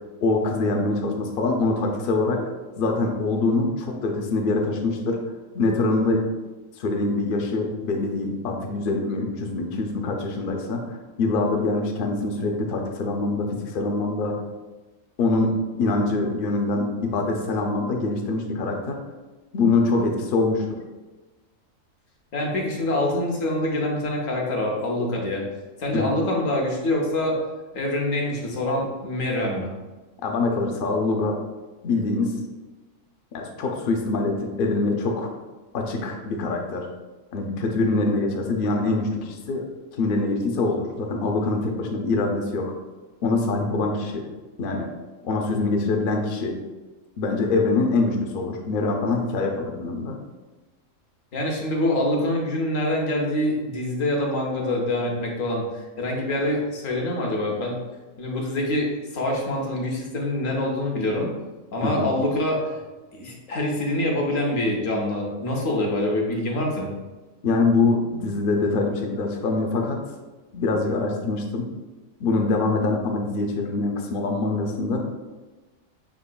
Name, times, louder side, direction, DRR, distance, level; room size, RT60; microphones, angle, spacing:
voice 1, 0.2-2.4 2.8-5.2 5.5-6.2 6.8-10.9 11.2-14.3 15.2-15.5 15.8-19.0 19.5-20.6 25.9-26.1 30.2-31.4 31.8-32.4 33.3-35.3 35.7-36.9 37.3-39.6 40.0-42.7 43.2-44.3 44.6-44.9 45.2-46.5 47.2-50.2 61.8-62.1 67.4-70.0 70.5-71.7 72.2-75.0, left 3 dB, 55° left, 2 dB, 0.6 m, -24 dB
voice 2, 22.3-25.4 25.8-27.4 27.7-29.7 51.3-55.7 56.0-57.8 58.2-61.3 61.7-62.6 63.1-66.9, left 1 dB, 75° left, -1 dB, 1.2 m, -25 dB
5.6 x 3.6 x 2.2 m, 1.2 s
omnidirectional pair, 1.4 m